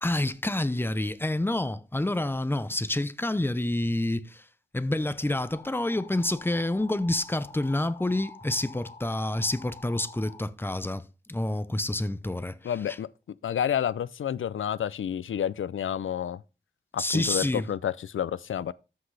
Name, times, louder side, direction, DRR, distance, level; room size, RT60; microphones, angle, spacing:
voice 1, 0.0-4.5 4.7-13.0 17.0-17.7, left 1 dB, 10° left, 0.7 m, -28 dB
sound 1, 5.4-10.4, left 4 dB, 35° left, 5.0 m, -48 dB
voice 2, 12.6-13.1 13.4-16.4 16.9-18.7, left 9 dB, 90° left, 0.4 m, -29 dB
13.0 x 6.0 x 3.3 m
wide cardioid pair, 70°, 20 cm